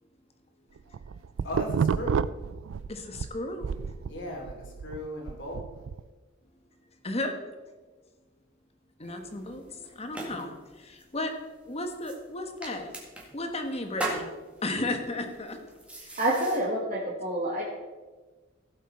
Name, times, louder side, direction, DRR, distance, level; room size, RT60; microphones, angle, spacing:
sound 1, 0.8-3.3 3.6-6.0, right 6 dB, 80° right, 0.4 m, -30 dB
voice 1, 1.4-2.3 4.1-5.7, left 1 dB, 65° left, 0 dB, 2.7 m, -37 dB
voice 2, 2.9-3.7 7.0-7.3 9.0-11.3 11.7-12.9 13.3-14.3 14.6-15.6 16.0-16.2 16.6-16.7, left 2 dB, 30° left, 5 dB, 1.2 m, -34 dB
sound 2, 9.0-16.6, right 2 dB, 5° right, 1.9 m, -41 dB
voice 3, 16.2-17.6, right 1 dB, 40° right, -5 dB, 1.6 m, -27 dB
16.0 x 7.1 x 4.3 m, 1.3 s
head